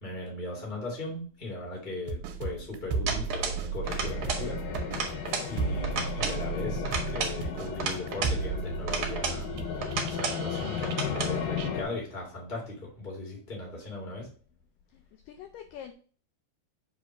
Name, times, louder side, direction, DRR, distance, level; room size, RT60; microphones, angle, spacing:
voice 1, 0.0-4.6 5.5-9.5 10.0-14.3, left 2 dB, 25° left, -3 dB, 1.1 m, -38 dB
sound 1, 2.1-11.3 11.6-11.7, right 5 dB, 90° right, 2.7 m, -35 dB
sound 2, 3.1-3.6 3.9-4.5 4.7-5.5 5.8-6.4 6.8-8.4 8.9-9.4 9.8-10.4 10.8-11.3, right 5 dB, 70° right, 1.2 m, -33 dB
sound 3, 3.8-11.8, left 7 dB, 70° left, 2.1 m, -35 dB
voice 2, 14.9-15.9, left 9 dB, 90° left, 6 dB, 1.9 m, -45 dB
7.3 x 2.9 x 5.9 m, 0.42 s
omnidirectional pair, 4.6 m